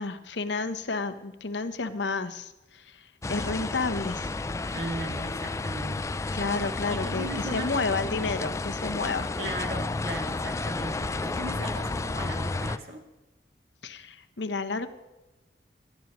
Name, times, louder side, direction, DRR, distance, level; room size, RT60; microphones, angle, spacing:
voice 1, 0.0-4.3 6.3-9.3 13.8-14.9, left 4 dB, 75° left, 10 dB, 0.9 m, -31 dB
sound 1, 3.2-12.8, left 3 dB, 15° left, 0.3 m, -32 dB
voice 2, 4.7-6.2 6.9-8.3 9.4-13.0, right 1 dB, 60° right, 1 dB, 2.4 m, -37 dB
19.0 x 12.5 x 3.1 m, 1.0 s
head